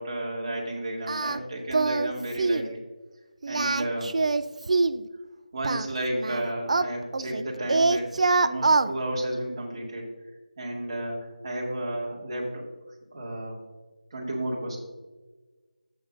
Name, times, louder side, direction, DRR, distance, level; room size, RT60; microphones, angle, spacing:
voice 1, 0.0-2.8 3.5-4.1 5.5-10.1 10.6-12.7 13.1-13.6 14.1-14.8, right 1 dB, 35° right, -2 dB, 2.1 m, -32 dB
Singing, 1.1-1.4 1.7-2.1 2.4-2.7 3.4-5.0 5.6-7.4 7.7-8.9, right 3 dB, 50° right, 0.4 m, -24 dB
15.5 x 5.7 x 2.5 m, 1.2 s
figure-of-eight pair, 170°, 4 cm